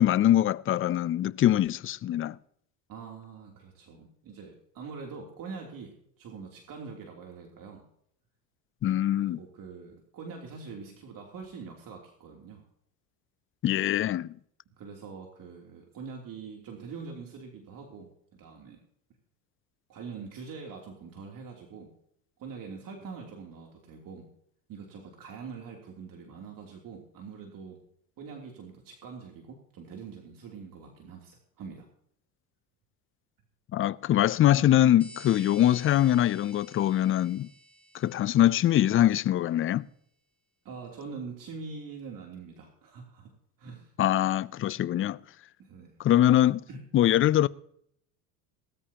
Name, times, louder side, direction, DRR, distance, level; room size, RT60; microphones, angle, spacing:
voice 1, 0.0-2.4 8.8-9.4 13.6-14.3 33.7-37.5 37.9-39.9 44.0-45.2 46.0-46.6 46.9-47.5, left 12 dB, 30° left, 0.5 m, -23 dB
voice 2, 2.9-7.8 9.2-12.6 14.8-18.8 19.9-21.9 22.4-24.3 24.7-27.8 28.2-31.9 40.6-43.3 43.6-43.9 44.3-44.4 45.6-46.0 46.7-46.8, right 5 dB, 50° right, 3.2 m, -44 dB
sound 1, 35.0-39.3, equal, 5° left, 1.8 m, -52 dB
19.0 x 13.5 x 2.9 m
hypercardioid pair, 85°, 44 cm